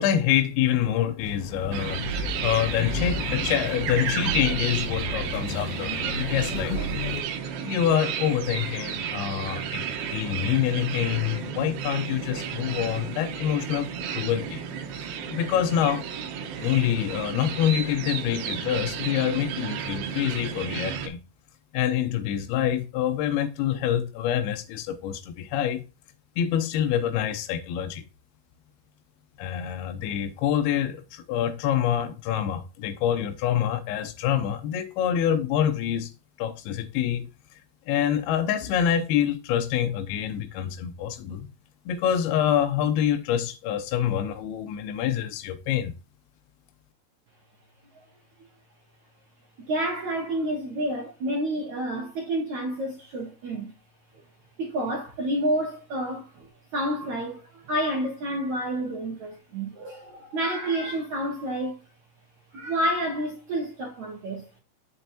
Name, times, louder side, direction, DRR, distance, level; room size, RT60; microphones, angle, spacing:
voice 1, 0.0-6.9 7.6-9.9 10.1-14.6 15.3-16.0 16.6-21.2 21.7-25.8 26.4-28.0 29.4-36.1 36.4-37.6 37.9-41.5 41.9-45.9, left 10 dB, 80° left, 2.3 m, -26 dB
sound 1, 1.2-7.2, left 1 dB, 60° left, 3.1 m, -33 dB
sound 2, 1.7-21.1, right 7 dB, 75° right, 3.1 m, -33 dB
voice 2, 49.6-53.7 54.6-56.5 56.7-61.8 62.5-64.4, right 1 dB, 55° right, 2.4 m, -29 dB
7.8 x 6.8 x 2.8 m
omnidirectional pair, 5.2 m